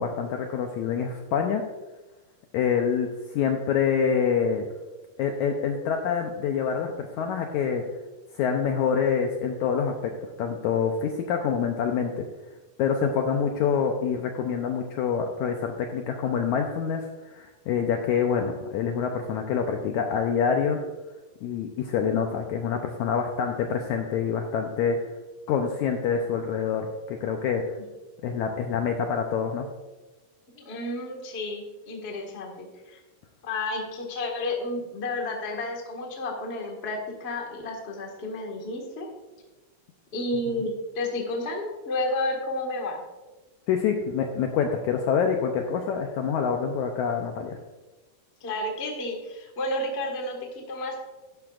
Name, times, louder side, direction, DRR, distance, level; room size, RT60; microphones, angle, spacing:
voice 1, 0.0-1.6 2.5-4.7 5.2-7.8 8.3-12.3 12.8-20.8 21.4-25.0 25.5-27.8 28.2-29.7 40.5-40.6 43.7-47.6, left 7 dB, 80° left, 3 dB, 1.8 m, -26 dB
voice 2, 30.5-33.0 33.4-39.1 40.1-43.0 48.4-51.0, left 2 dB, 35° left, 0 dB, 1.0 m, -31 dB
12.0 x 11.5 x 2.5 m, 1.2 s
omnidirectional pair, 4.0 m